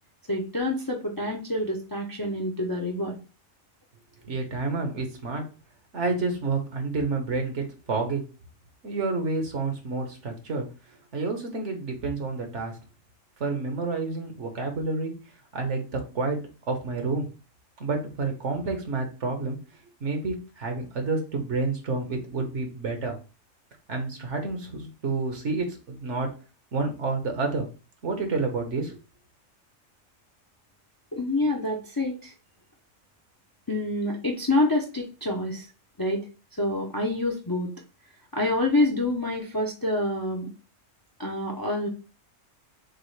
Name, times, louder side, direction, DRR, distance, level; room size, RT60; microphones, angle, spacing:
voice 1, 0.3-3.2 31.1-32.3 33.7-35.7 36.0-36.2 36.6-37.7 38.3-40.5 41.2-41.9, left 2 dB, 25° left, 0 dB, 0.5 m, -27 dB
voice 2, 4.2-5.4 5.9-8.2 8.8-10.6 11.1-12.7 13.4-15.1 15.5-16.4 16.7-17.3 17.8-19.6 20.0-23.2 23.9-26.3 26.7-27.7 28.0-29.0, right 3 dB, 60° right, 4 dB, 1.4 m, -29 dB
6.6 x 2.5 x 3.2 m, 0.34 s
omnidirectional pair, 1.4 m